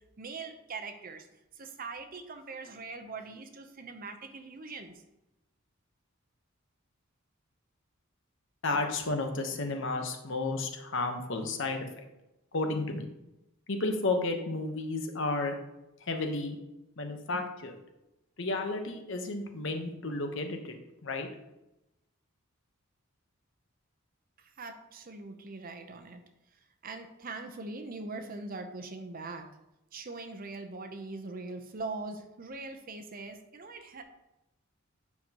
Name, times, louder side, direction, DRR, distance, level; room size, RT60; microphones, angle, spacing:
voice 1, 0.2-1.3 1.6-4.9 24.6-26.2 26.8-29.5 29.9-34.0, right 3 dB, 45° right, 7 dB, 0.7 m, -41 dB
voice 2, 8.6-11.9 12.5-13.1 13.7-15.6 16.1-16.6 17.0-17.8 18.4-20.7 21.0-21.3, left 2 dB, 60° left, 5 dB, 1.0 m, -32 dB
9.2 x 5.9 x 2.9 m, 0.92 s
head